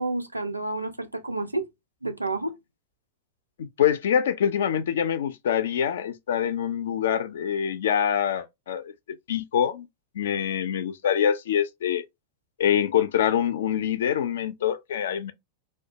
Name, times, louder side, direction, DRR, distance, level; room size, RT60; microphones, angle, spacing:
voice 1, 0.0-1.7 2.0-2.5, right 2 dB, 85° right, 0.4 m, -29 dB
voice 2, 3.6-8.9 9.3-9.9 10.1-12.0 12.6-15.3, left 9 dB, 60° left, 0.3 m, -25 dB
2.2 x 2.1 x 2.7 m
figure-of-eight pair, 90°, 0 cm